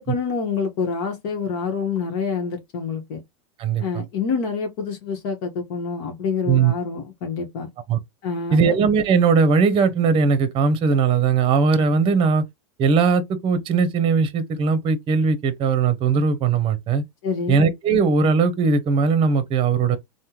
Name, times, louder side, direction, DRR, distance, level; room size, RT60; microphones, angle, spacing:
voice 1, 0.1-3.2 3.8-7.7 8.2-8.8 17.2-17.6, left 5 dB, 60° left, 1.0 m, -27 dB
voice 2, 3.6-4.0 6.5-6.7 7.9-8.0 8.5-12.4 12.8-17.0 17.5-20.0, right 5 dB, 35° right, 0.7 m, -19 dB
3.4 x 2.1 x 2.9 m
hypercardioid pair, 115°, 16 cm